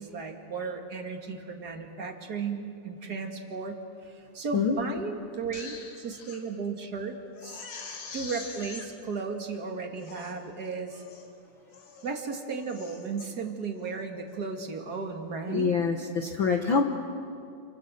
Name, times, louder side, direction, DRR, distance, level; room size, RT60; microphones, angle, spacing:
voice 1, 0.0-7.7 8.1-11.0 12.0-15.7, right 4 dB, 35° right, 4 dB, 2.1 m, -35 dB
Crying sobbing, 5.3-6.4 6.8-6.9 7.3-8.9 9.5-9.6 10.0-10.4 10.9-11.3 11.7-12.1 12.5-13.3 13.7-14.0, left 4 dB, 70° left, 3.8 m, -44 dB
voice 2, 15.5-16.8, left 5 dB, 55° left, 3 dB, 1.5 m, -25 dB
29.0 x 25.5 x 7.6 m, 2.4 s
omnidirectional pair, 3.6 m